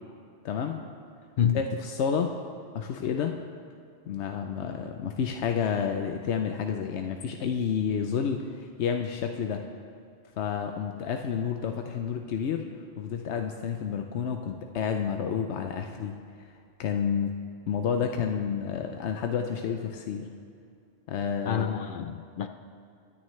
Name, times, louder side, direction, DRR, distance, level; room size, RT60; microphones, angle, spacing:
voice 1, 0.4-0.8 1.5-2.3 2.7-3.3 4.1-9.6 10.4-12.7 13.0-16.1 16.8-17.4 17.7-20.2 21.1-21.8, left 7 dB, 85° left, 4 dB, 1.0 m, -30 dB
voice 2, 21.4-22.5, left 8 dB, 60° left, 8 dB, 0.6 m, -27 dB
22.0 x 10.0 x 3.2 m, 2.4 s
omnidirectional pair, 1.1 m